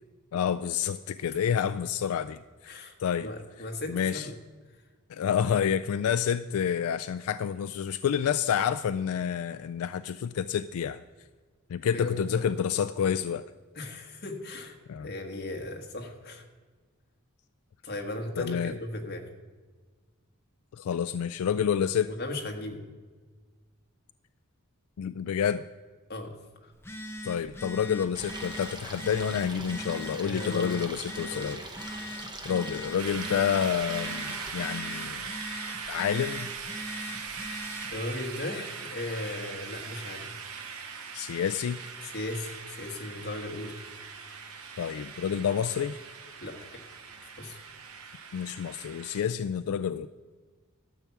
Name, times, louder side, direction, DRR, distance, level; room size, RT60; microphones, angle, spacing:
voice 1, 0.3-3.3 3.9-4.3 5.1-11.0 11.7-13.4 14.9-15.1 18.4-18.7 20.7-22.1 25.0-25.6 27.2-31.6 32.5-35.3 35.9-36.5 41.1-41.8 44.8-46.0 48.3-50.1, left 8 dB, 85° left, 12 dB, 0.3 m, -29 dB
voice 2, 3.2-4.3 11.8-12.4 13.7-16.4 17.8-19.2 22.1-22.8 26.1-26.7 30.2-30.8 31.3-31.5 37.9-40.3 42.0-43.8 46.4-46.6 47.4-47.6, left 2 dB, 45° left, 2 dB, 1.5 m, -37 dB
Telephone, 26.7-38.0, left 1 dB, 10° left, 0.7 m, -41 dB
Stream, 28.1-34.5, right 2 dB, 20° right, 1.0 m, -42 dB
sound 1, 33.0-49.2, right 5 dB, 90° right, 1.0 m, -40 dB
12.5 x 5.9 x 7.1 m, 1.4 s
head